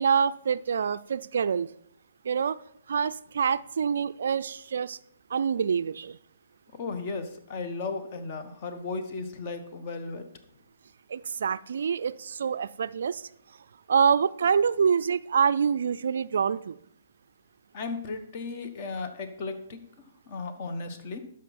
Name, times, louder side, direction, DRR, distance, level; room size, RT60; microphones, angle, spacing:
voice 1, 0.0-1.7 2.2-2.6 2.9-5.0 5.3-6.2 11.1-13.3 13.9-16.8, right 6 dB, 60° right, 16 dB, 0.3 m, -26 dB
voice 2, 6.7-10.3 17.7-21.2, left 3 dB, 40° left, 8 dB, 1.3 m, -35 dB
12.5 x 5.3 x 4.2 m, 0.72 s
figure-of-eight pair, 130°, 0 cm